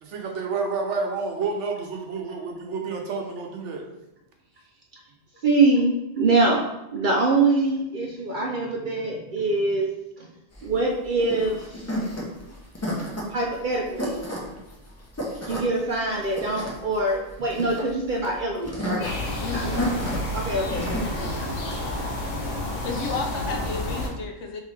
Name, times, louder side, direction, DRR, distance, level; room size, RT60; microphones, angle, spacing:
voice 1, 0.0-3.8 19.6-19.9, right 4 dB, 70° right, 2 dB, 1.0 m, -30 dB
voice 2, 5.4-6.6 6.9-9.9 10.6-11.6 13.3-14.2 15.5-19.1 19.5-20.0 20.3-22.1, right 3 dB, 55° right, -1 dB, 0.6 m, -24 dB
sound 1, 10.5-21.1, equal, 15° left, 0.6 m, -32 dB
sound 2, 19.0-24.1, left 1 dB, 90° left, 1.2 m, -30 dB
voice 3, 19.4-19.9 22.8-24.6, left 4 dB, 70° left, 2 dB, 0.9 m, -32 dB
3.7 x 3.7 x 3.2 m, 0.90 s
omnidirectional pair, 1.3 m